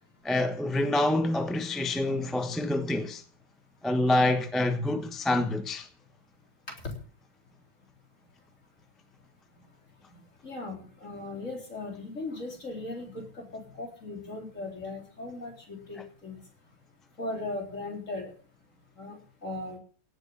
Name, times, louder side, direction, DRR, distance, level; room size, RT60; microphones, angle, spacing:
voice 1, 0.2-3.2 3.8-5.9, left 2 dB, ahead, 1.0 m, -27 dB
voice 2, 10.4-16.4 17.2-18.3 19.0-19.2 19.4-19.8, left 2 dB, 50° left, 4.3 m, -38 dB
17.0 x 6.4 x 8.5 m
omnidirectional pair, 1.7 m